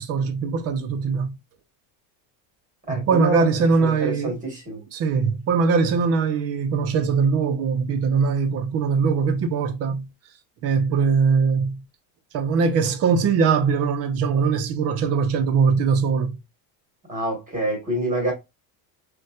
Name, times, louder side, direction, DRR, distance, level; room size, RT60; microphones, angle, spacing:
voice 1, 0.0-1.3 2.9-4.4 4.9-10.1 10.6-11.8 12.3-16.4, right 5 dB, 35° right, 0.5 m, -21 dB
voice 2, 2.9-4.8 5.1-5.2 17.1-18.3, right 1 dB, 15° right, 1.2 m, -27 dB
4.0 x 2.2 x 2.3 m
cardioid pair, 160°, 46 cm